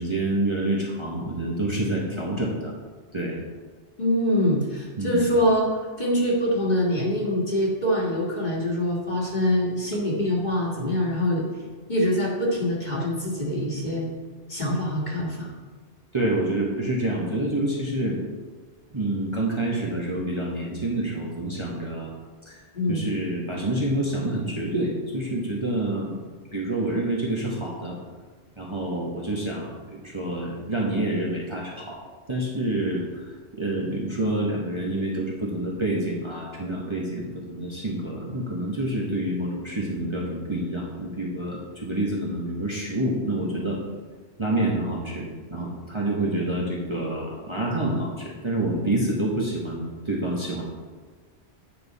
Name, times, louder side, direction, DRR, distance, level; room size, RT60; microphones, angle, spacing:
voice 1, 0.0-2.7 3.1-3.4 5.0-5.2 16.1-18.2 18.9-22.1 22.5-28.0 28.6-32.0 32.3-43.8 44.4-50.6, right 1 dB, 25° right, -4 dB, 1.1 m, -27 dB
voice 2, 4.0-5.7 6.0-11.5 11.9-14.1 14.5-15.5 22.7-23.0, equal, 40° left, -4 dB, 1.8 m, -24 dB
8.9 x 5.4 x 4.1 m, 1.4 s
omnidirectional pair, 1.2 m